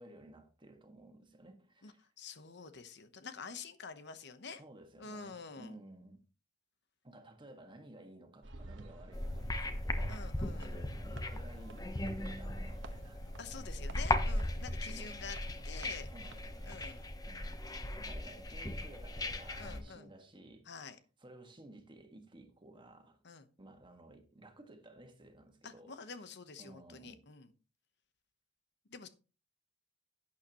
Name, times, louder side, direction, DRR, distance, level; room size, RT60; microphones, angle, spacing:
voice 1, 0.0-2.0 4.6-6.2 7.0-13.2 14.2-14.5 14.9-15.1 16.1-16.8 17.3-20.9 21.2-23.2 23.6-26.2 26.6-27.2, right 1 dB, 25° right, 1.7 m, -56 dB
voice 2, 1.8-4.6 5.0-5.7 10.1-10.8 13.4-15.4 15.6-16.1 16.7-17.0 19.6-20.1 20.6-21.0 23.2-23.5 25.6-27.5 28.9-29.1, left 5 dB, 60° left, 1.0 m, -48 dB
sound 1, 8.4-17.1, right 2 dB, 70° right, 1.2 m, -51 dB
sound 2, 9.1-19.8, left 1 dB, 20° left, 1.0 m, -38 dB
11.5 x 8.7 x 3.0 m
head